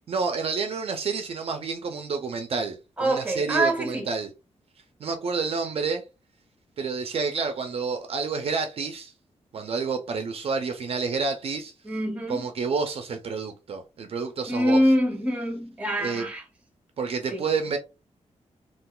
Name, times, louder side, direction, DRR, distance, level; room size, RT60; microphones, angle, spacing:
voice 1, 0.1-4.3 5.0-6.0 6.8-9.1 9.5-11.7 12.3-14.8 16.0-16.2 17.0-17.8, right 5 dB, 55° right, 0.5 m, -29 dB
voice 2, 3.0-4.1 11.8-12.5 14.5-16.4 17.3-17.5, equal, 10° right, 0.8 m, -25 dB
3.7 x 2.4 x 2.3 m
wide cardioid pair, 140°, 12 cm